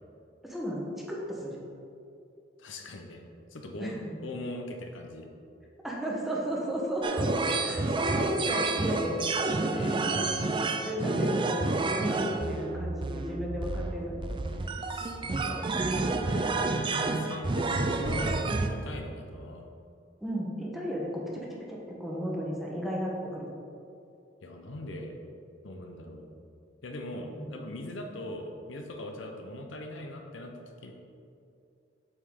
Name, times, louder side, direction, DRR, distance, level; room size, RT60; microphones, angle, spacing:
voice 1, 0.4-1.6 3.8-4.1 5.8-9.2 9.9-10.2 10.7-14.2 20.2-23.5 27.2-27.5, equal, ahead, -4 dB, 1.0 m, -34 dB
voice 2, 2.6-3.2 3.5-3.9 4.2-5.3 7.7-8.0 9.7-10.1 14.9-15.1 15.4-18.3 18.7-19.7 24.4-25.2 25.6-26.3 26.8-30.5 30.8-30.9, left 1 dB, 80° left, 3 dB, 0.8 m, -41 dB
sound 1, 7.0-18.7, right 3 dB, 25° right, 0.4 m, -29 dB
8.0 x 5.4 x 3.6 m, 2.6 s
head